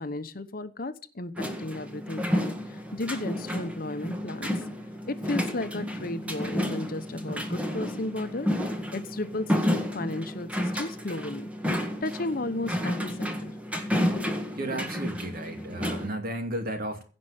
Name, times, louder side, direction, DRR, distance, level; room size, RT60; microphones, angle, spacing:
voice 1, 0.0-4.5 5.1-8.5 8.9-11.5 12.0-13.6 14.0-14.3, left 2 dB, 50° left, 11 dB, 1.0 m, -34 dB
sound 1, 1.4-16.1, equal, 5° right, 1.7 m, -31 dB
voice 2, 14.6-17.0, right 1 dB, 50° right, 5 dB, 2.4 m, -33 dB
16.0 x 5.5 x 8.2 m, 0.39 s
head